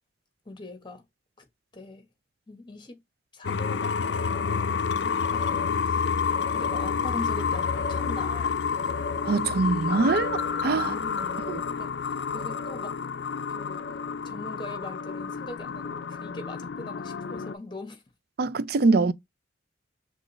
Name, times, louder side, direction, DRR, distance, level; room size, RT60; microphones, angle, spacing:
voice 1, 0.4-1.0 1.4-1.5 1.7-2.1 2.5-3.0 3.3-6.1 6.5-8.6 10.7-11.4 11.8-13.0 13.5-18.0, left 2 dB, 25° left, 1.3 m, -42 dB
sound 1, 3.4-17.6, left 6 dB, 65° left, 0.4 m, -29 dB
voice 2, 9.2-10.9 11.5-11.6 18.4-19.1, right 3 dB, 55° right, 0.4 m, -23 dB
6.1 x 2.4 x 3.1 m
head